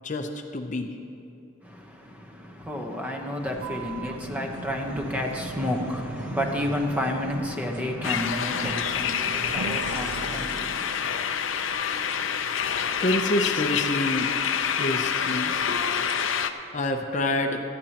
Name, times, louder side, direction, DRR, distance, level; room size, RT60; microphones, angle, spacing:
voice 1, 0.0-0.9 13.0-14.3 14.8-15.6 16.7-17.6, left 1 dB, 40° left, 4 dB, 0.6 m, -27 dB
voice 2, 1.6-11.1, left 1 dB, 10° right, 1 dB, 1.0 m, -31 dB
sound 1, 3.4-10.9, right 4 dB, 70° right, 0.4 m, -38 dB
sound 2, 8.0-16.5, left 7 dB, 90° left, 0.6 m, -27 dB
18.0 x 13.5 x 2.9 m, 2.7 s
head